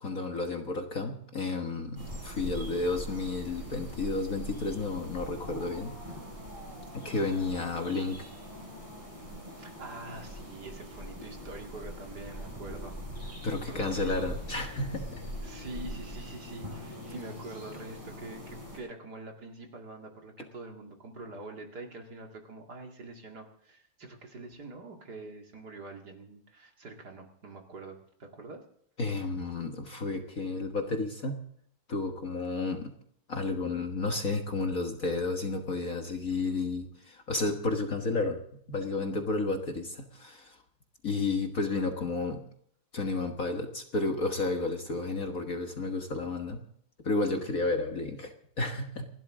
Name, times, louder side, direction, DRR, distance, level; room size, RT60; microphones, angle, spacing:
voice 1, 0.0-5.9 6.9-8.3 13.4-15.2 29.0-31.5 31.9-32.9 33.3-38.4 38.7-40.6 41.0-42.4 42.9-46.6 47.0-49.1, left 3 dB, 45° left, 4 dB, 1.6 m, -32 dB
sound 1, 2.0-18.8, equal, 15° right, 5.9 m, -42 dB
voice 2, 9.6-14.4 15.4-28.6, right 2 dB, 50° right, 3 dB, 2.5 m, -45 dB
29.0 x 12.0 x 3.7 m, 0.68 s
omnidirectional pair, 2.4 m